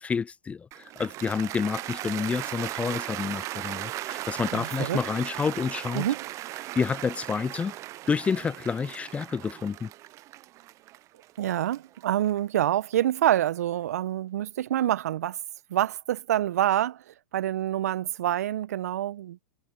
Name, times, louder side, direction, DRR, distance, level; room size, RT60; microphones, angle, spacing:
voice 1, 0.0-6.1 6.8-7.7 8.1-9.9, left 5 dB, 15° left, 0.6 m, -29 dB
Cheering / Applause, 0.7-12.9, right 16 dB, 35° right, 0.9 m, -37 dB
voice 2, 4.5-5.0 5.9-6.2 11.4-15.4 15.7-17.0 17.3-19.4, right 12 dB, 65° right, 1.3 m, -26 dB
hypercardioid pair, 105°, 9 cm